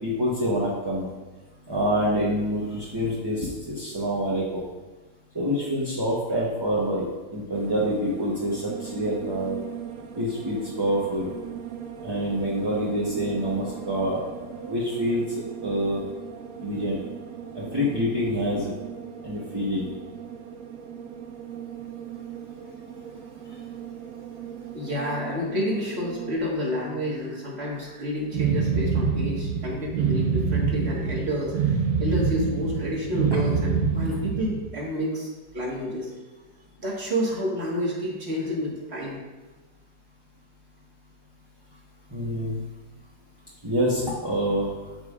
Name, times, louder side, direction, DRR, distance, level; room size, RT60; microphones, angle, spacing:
voice 1, 0.0-1.1 1.7-4.6 5.3-9.6 10.1-11.3 12.0-14.2 14.5-16.0 16.6-17.0 17.5-18.7 19.2-19.9 42.1-42.5 43.6-44.7, equal, 20° right, -7 dB, 0.8 m, -26 dB
sound 1, 7.5-26.4, right 8 dB, 70° right, 0.9 m, -39 dB
voice 2, 24.7-36.1 36.8-39.2, equal, 40° right, -4 dB, 1.8 m, -29 dB
sound 2, 28.3-34.6, right 5 dB, 85° right, 1.5 m, -25 dB
12.0 x 4.9 x 2.5 m, 1.2 s
omnidirectional pair, 1.8 m